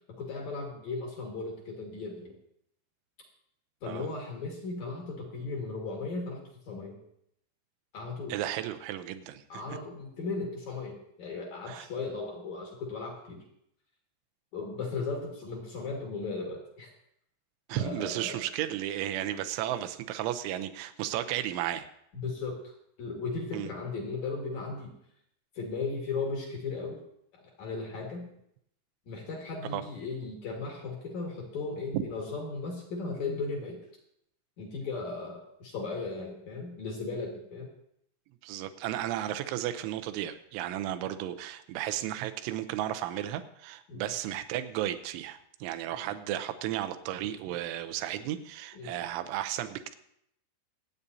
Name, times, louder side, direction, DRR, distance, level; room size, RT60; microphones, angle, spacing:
voice 1, 0.1-2.3 3.8-7.0 7.9-8.3 9.5-13.5 14.5-16.9 17.7-18.4 22.1-22.6 23.0-24.9 25.5-27.0 27.3-28.3 29.1-33.8 34.6-37.7 43.9-44.1 45.9-46.1 48.7-49.0, left 3 dB, 60° left, 0 dB, 1.9 m, -36 dB
voice 2, 8.3-9.6 11.7-11.9 17.7-21.9 23.5-23.7 29.7-29.8 31.9-32.0 38.4-50.0, right 12 dB, 80° right, 9 dB, 2.9 m, -34 dB
25.5 x 8.7 x 2.7 m, 0.74 s
omnidirectional pair, 5.9 m